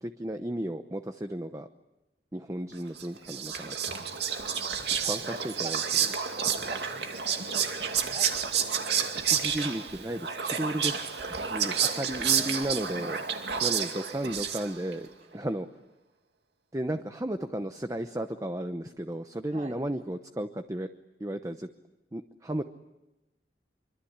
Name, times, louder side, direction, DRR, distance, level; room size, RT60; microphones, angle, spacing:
voice 1, 0.0-1.7 2.3-3.7 5.1-5.8 9.2-13.2 13.6-15.7 16.7-20.9 21.2-21.7 22.1-22.6, right 1 dB, 20° right, 7 dB, 0.9 m, -34 dB
Whispering, 3.0-14.9, right 7 dB, 65° right, 2.4 m, -30 dB
voice 2, 4.4-5.8 6.3-9.2 11.7-12.1 12.4-12.6 13.3-14.0 19.5-19.8, right 2 dB, 40° right, 4 dB, 5.7 m, -45 dB
26.0 x 24.5 x 8.8 m, 1.0 s
head